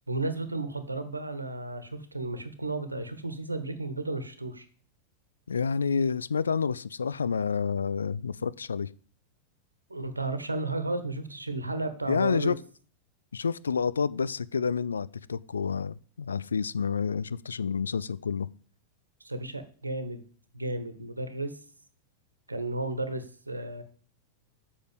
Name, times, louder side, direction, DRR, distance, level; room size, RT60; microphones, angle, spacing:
voice 1, 0.1-4.7 9.9-12.5 19.2-20.2 20.5-21.5 22.5-23.8, right 2 dB, 80° right, 1.3 m, -33 dB
voice 2, 5.5-8.9 12.1-12.6 13.3-18.5, left 6 dB, 70° left, 0.4 m, -29 dB
7.8 x 6.4 x 7.8 m
figure-of-eight pair, 90°, 0 cm